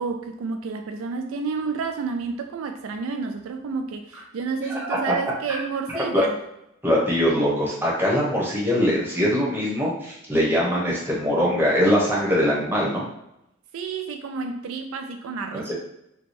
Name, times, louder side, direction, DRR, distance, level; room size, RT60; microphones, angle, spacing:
voice 1, 0.0-6.4 13.7-15.7, right 4 dB, 75° right, 0.3 m, -30 dB
voice 2, 5.9-6.3 6.8-13.0 15.5-15.7, equal, 10° right, 1.0 m, -22 dB
3.2 x 2.2 x 4.2 m
head